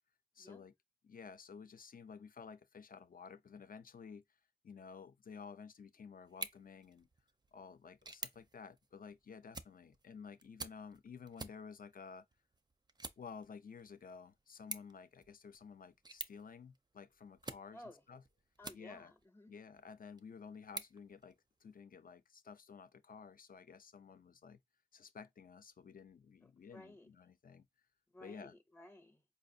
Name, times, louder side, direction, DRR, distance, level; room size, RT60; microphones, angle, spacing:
voice 1, 0.3-0.7 1.0-4.2 4.6-7.1 7.5-12.3 13.2-17.8 18.1-18.2 18.7-19.1 19.5-24.6 24.9-27.7 28.2-28.5, left 6 dB, 65° left, 0.5 m, -53 dB
sound 1, 6.2-19.2 19.7-21.8, right 3 dB, 25° right, 0.4 m, -52 dB
voice 2, 17.7-18.0 18.6-19.5 26.4-27.1 28.1-29.2, left 1 dB, 15° left, 0.6 m, -56 dB
4.7 x 2.4 x 2.6 m
wide cardioid pair, 85°, 16 cm